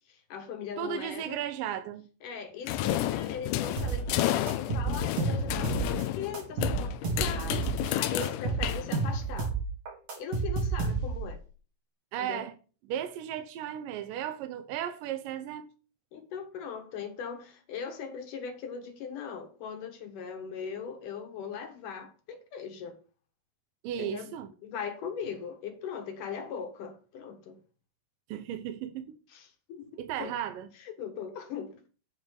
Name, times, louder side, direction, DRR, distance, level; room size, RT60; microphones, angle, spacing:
voice 1, 0.1-1.4 2.2-9.6 10.2-11.4 12.2-12.4 16.1-23.0 24.0-24.3 24.6-27.6 29.3-29.9 30.2-30.3 30.8-31.8, left 6 dB, 65° left, 2.8 m, -39 dB
voice 2, 0.8-2.1 12.1-12.6 12.9-15.7 23.8-24.5 28.3-29.2 30.0-30.7, right 10 dB, 75° right, 2.2 m, -35 dB
sound 1, 2.7-9.4, left 13 dB, 85° left, 1.8 m, -31 dB
sound 2, 3.8-4.2 4.5-6.0 6.3-7.9 8.2-11.3, right 4 dB, 50° right, 4.4 m, -30 dB
9.0 x 4.8 x 7.3 m
omnidirectional pair, 4.3 m